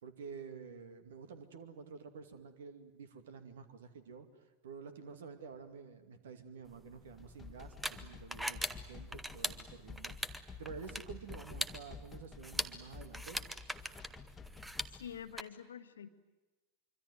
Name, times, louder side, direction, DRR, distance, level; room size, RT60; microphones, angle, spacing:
voice 1, 0.0-4.3 4.6-13.4, right 5 dB, 60° right, 9 dB, 2.4 m, -50 dB
sound 1, 6.7-15.4, right 1 dB, 5° right, 1.1 m, -42 dB
sound 2, 7.0-15.2, left 4 dB, 15° left, 1.6 m, -51 dB
voice 2, 15.0-16.1, left 8 dB, 65° left, 11 dB, 1.4 m, -46 dB
25.0 x 25.0 x 9.3 m, 1.1 s
figure-of-eight pair, 90°, 0 cm